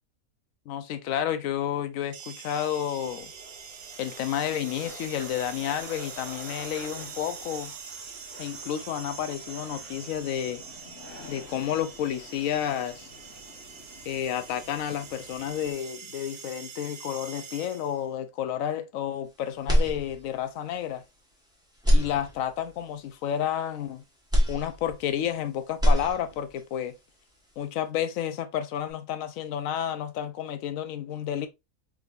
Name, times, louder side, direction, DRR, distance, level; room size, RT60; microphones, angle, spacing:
voice 1, 0.7-3.3 4.0-7.7 8.4-10.6 11.3-13.1 14.1-21.0 21.9-24.0 24.5-27.0 27.6-31.5, left 10 dB, 70° left, 1.0 m, -31 dB
sound 1, 2.1-18.1, right 6 dB, 85° right, 1.2 m, -44 dB
sound 2, 3.0-15.7, left 3 dB, 50° left, 1.2 m, -49 dB
sound 3, 19.6-20.6 21.0-21.1 21.7-22.8 24.3-25.4 25.7-26.6, equal, 5° right, 1.3 m, -24 dB
3.8 x 3.4 x 2.5 m
omnidirectional pair, 1.5 m